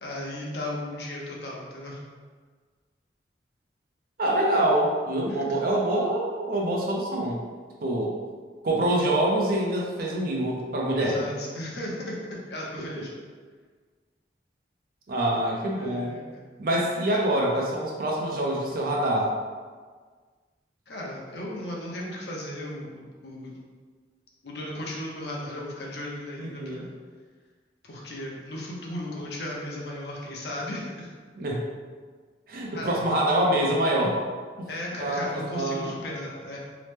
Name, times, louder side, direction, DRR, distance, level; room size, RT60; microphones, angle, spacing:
voice 1, 0.0-2.0 11.0-13.1 15.7-16.5 20.9-23.6 24.4-26.9 27.8-31.1 32.7-33.0 34.7-36.6, left 1 dB, 65° left, -3 dB, 0.6 m, -36 dB
voice 2, 4.2-7.4 7.8-8.1 8.6-11.2 12.9-13.0 15.1-16.2 16.6-19.3 26.4-26.9 31.4-31.6 32.5-34.2 34.6-34.7 35.0-35.9, right 1 dB, 50° right, -2 dB, 0.5 m, -25 dB
2.9 x 2.0 x 3.3 m, 1.5 s
head